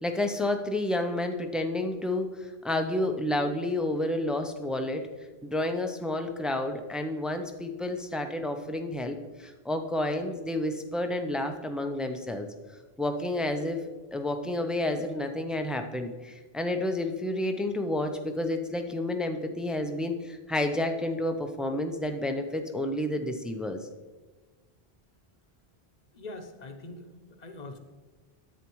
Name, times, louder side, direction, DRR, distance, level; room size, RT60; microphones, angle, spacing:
voice 1, 0.0-5.1 5.4-12.5 13.0-13.8 14.1-23.9, left 1 dB, ahead, 5 dB, 0.4 m, -30 dB
voice 2, 26.1-27.8, left 2 dB, 45° left, 6 dB, 0.9 m, -43 dB
10.5 x 8.2 x 3.1 m, 1.3 s
omnidirectional pair, 1.0 m